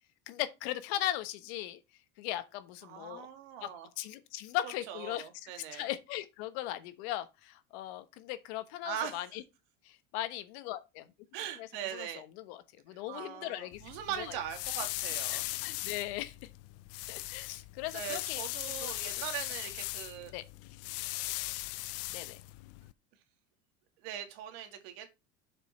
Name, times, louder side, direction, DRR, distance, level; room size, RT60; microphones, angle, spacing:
voice 1, 0.3-1.8 2.2-3.3 3.6-3.7 4.0-9.4 9.8-11.1 11.6-13.8 14.2-14.4 15.3-16.3 17.1-18.4 18.8-18.9 20.3-20.4 22.1-22.4, left 14 dB, 80° left, 1.2 m, -38 dB
voice 2, 2.9-3.9 4.9-5.8 8.8-9.2 11.3-12.2 13.1-15.4 17.9-20.3 24.0-25.1, right 10 dB, 80° right, 2.0 m, -40 dB
sound 1, 13.7-22.9, left 20 dB, 50° left, 0.4 m, -39 dB
7.3 x 5.5 x 4.2 m
cardioid pair, 155°, 32 cm